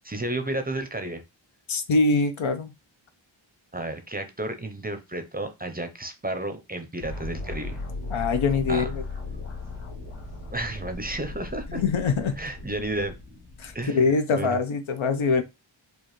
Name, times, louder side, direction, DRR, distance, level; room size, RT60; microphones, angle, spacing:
voice 1, 0.0-1.2 3.7-7.8 8.7-8.9 10.5-11.8 12.4-13.1 13.7-14.6, right 1 dB, 20° right, 0.5 m, -32 dB
voice 2, 1.7-2.7 8.1-9.0 11.7-12.4 13.6-15.4, left 4 dB, 80° left, 0.7 m, -23 dB
sound 1, 7.0-13.8, left 3 dB, 65° left, 2.4 m, -37 dB
4.7 x 2.5 x 3.0 m
wide cardioid pair, 110°, 47 cm